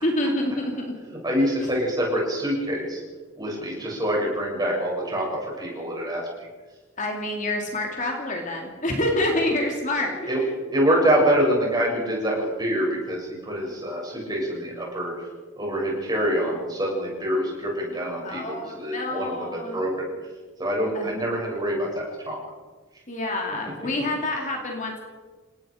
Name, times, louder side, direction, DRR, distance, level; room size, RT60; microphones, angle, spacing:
voice 1, 0.0-0.9 1.4-1.5 7.0-10.5 18.2-19.8 20.9-21.2 23.1-25.0, left 1 dB, 35° left, 1 dB, 2.9 m, -27 dB
voice 2, 1.2-3.0 3.4-6.5 10.3-10.4 10.7-15.1 15.6-20.1 20.6-22.4, equal, 20° right, -3 dB, 7.8 m, -25 dB
29.0 x 18.5 x 5.2 m, 1.3 s
head